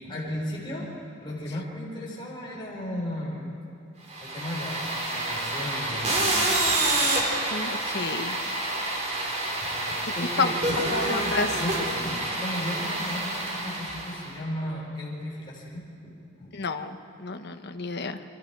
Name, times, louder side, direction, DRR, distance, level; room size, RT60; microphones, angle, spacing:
voice 1, 0.0-0.9 1.2-3.5 4.2-6.3 9.6-16.1 16.4-16.6, left 1 dB, 25° left, -4 dB, 5.2 m, -35 dB
sound 1, 4.1-14.3, right 2 dB, 35° right, 4.4 m, -28 dB
voice 2, 7.5-8.4 10.4-10.5 10.9-11.5 16.5-18.2, left 4 dB, 55° left, 7 dB, 1.2 m, -30 dB
29.0 x 24.5 x 4.8 m, 2.8 s
head